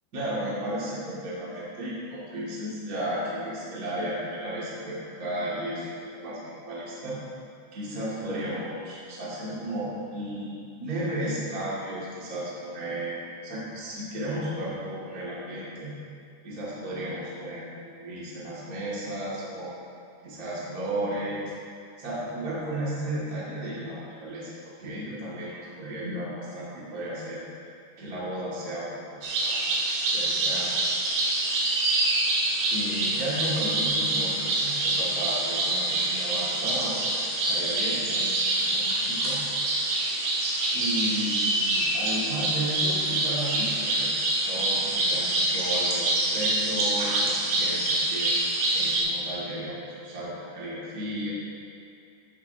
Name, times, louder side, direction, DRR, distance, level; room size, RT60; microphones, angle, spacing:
voice 1, 0.1-7.2 7.7-13.2 13.4-15.9 16.4-19.7 20.2-21.4 22.0-24.5 24.8-27.4 28.0-29.7 30.1-30.7 32.7-38.4 38.7-39.4 40.7-48.3 48.7-51.3, right 1 dB, 30° right, -8 dB, 1.8 m, -34 dB
sound 1, 29.2-49.0, right 2 dB, 75° right, 3.5 m, -26 dB
14.0 x 7.6 x 2.8 m, 2.5 s
omnidirectional pair, 4.9 m